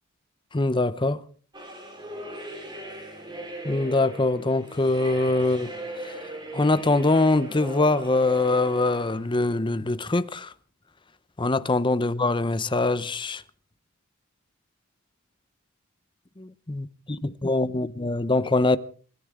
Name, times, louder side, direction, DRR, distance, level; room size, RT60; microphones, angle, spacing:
voice 1, 0.5-1.2 3.6-5.7 6.5-10.5 11.4-13.4 16.4-18.8, left 2 dB, 20° left, 0.7 m, -23 dB
sound 1, 1.5-9.3, right 1 dB, 20° right, 4.1 m, -39 dB
28.0 x 14.0 x 3.6 m
head